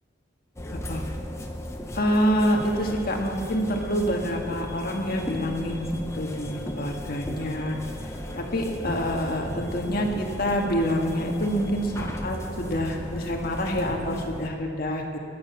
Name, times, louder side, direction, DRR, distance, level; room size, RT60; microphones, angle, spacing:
sound 1, 0.6-14.5, left 1 dB, 15° left, 1.0 m, -36 dB
voice 1, 1.9-7.8 8.4-15.0, equal, 50° left, 1 dB, 1.8 m, -27 dB
22.5 x 9.2 x 5.9 m, 2.6 s
head